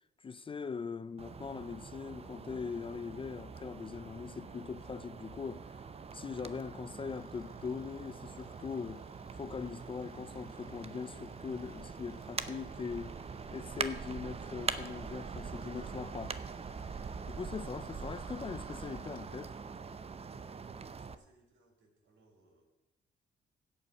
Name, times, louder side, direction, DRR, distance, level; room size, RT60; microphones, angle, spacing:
voice 1, 0.2-9.0 9.3-13.2 13.5-16.4 17.3-19.6, left 5 dB, 25° left, 0.4 m, -41 dB
sound 1, 1.2-21.2, right 5 dB, 30° right, 0.7 m, -43 dB
voice 2, 6.3-7.1 20.9-22.6, right 2 dB, 65° right, 3.8 m, -68 dB
sound 2, 7.0-20.3, left 4 dB, 50° left, 2.2 m, -68 dB
16.0 x 5.6 x 5.6 m
cardioid pair, 90°, 20 cm